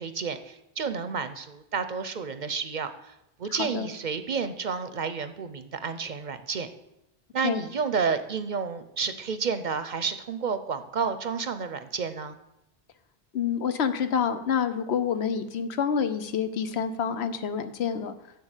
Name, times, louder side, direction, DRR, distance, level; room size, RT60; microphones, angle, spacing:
voice 1, 0.0-3.1 3.4-6.7 7.3-12.4, right 5 dB, 50° right, 11 dB, 0.7 m, -30 dB
voice 2, 3.5-3.9 7.4-7.6 13.3-18.1, left 7 dB, 85° left, 10 dB, 1.1 m, -28 dB
7.5 x 6.9 x 8.1 m, 0.87 s
omnidirectional pair, 1.1 m